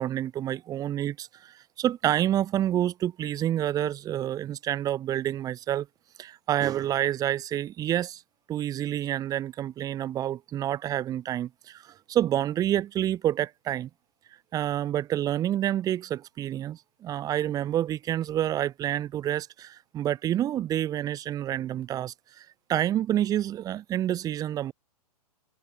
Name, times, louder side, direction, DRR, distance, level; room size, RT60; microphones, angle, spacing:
voice 1, 0.0-5.9 6.2-8.2 8.5-13.9 14.5-24.7, right 12 dB, 20° right, 0.9 m, -28 dB
figure-of-eight pair, 115°, 20 cm